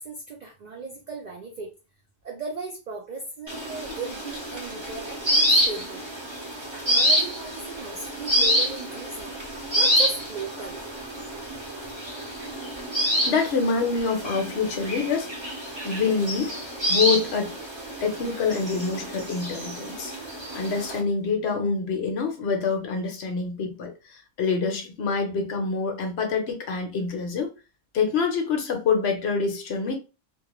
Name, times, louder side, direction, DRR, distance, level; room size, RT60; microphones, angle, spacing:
voice 1, 0.0-1.7 2.2-6.0 6.7-9.4 9.8-10.9 11.3-11.6, right 3 dB, 70° right, 0.4 m, -37 dB
rock sparrow, 3.5-21.0, equal, 25° right, 0.7 m, -27 dB
voice 2, 13.0-15.3 15.8-16.6 16.9-17.5 18.0-20.1 20.5-27.5 27.9-30.0, left 5 dB, 65° left, 0.8 m, -26 dB
2.3 x 2.1 x 2.9 m
omnidirectional pair, 1.3 m